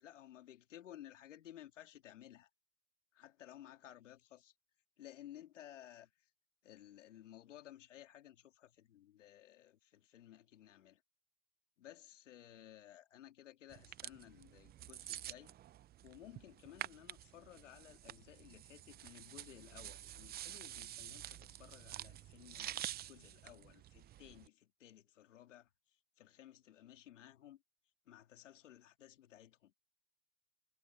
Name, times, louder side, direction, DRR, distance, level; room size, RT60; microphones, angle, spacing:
voice 1, 0.0-2.5 3.1-4.5 5.0-6.3 6.6-11.0 11.8-15.5 16.0-27.6 28.0-29.7, left 12 dB, 90° left, 3.2 m, -57 dB
sound 1, 13.7-24.5, right 13 dB, 25° right, 0.7 m, -49 dB
hypercardioid pair, 115°, 36 cm